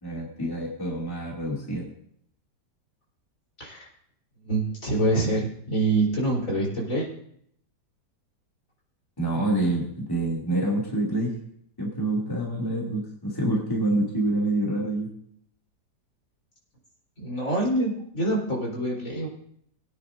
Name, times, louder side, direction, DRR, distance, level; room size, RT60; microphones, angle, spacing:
voice 1, 0.0-1.8 9.2-11.3 11.8-15.1, right 1 dB, 15° left, -3 dB, 2.5 m, -27 dB
voice 2, 3.6-3.9 4.4-7.1 17.2-19.3, right 2 dB, 50° left, -3 dB, 4.1 m, -26 dB
22.0 x 9.5 x 2.6 m, 0.68 s
omnidirectional pair, 1.8 m